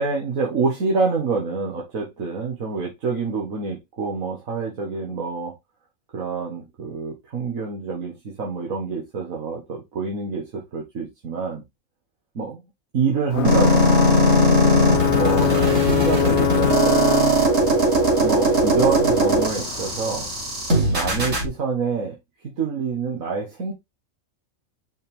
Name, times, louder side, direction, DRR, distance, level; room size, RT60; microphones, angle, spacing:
voice 1, 0.0-5.5 6.1-11.6 12.4-12.6 12.9-14.0 15.1-17.3 18.2-20.3 20.9-22.2 22.6-23.7, right 5 dB, 85° right, 1.9 m, -26 dB
Ocean / Boat Water vehicle / Alarm, 13.3-20.9, left 15 dB, 65° left, 0.8 m, -24 dB
sound 1, 13.4-21.4, right 2 dB, 70° right, 2.9 m, -19 dB
5.6 x 5.3 x 3.5 m
omnidirectional pair, 1.4 m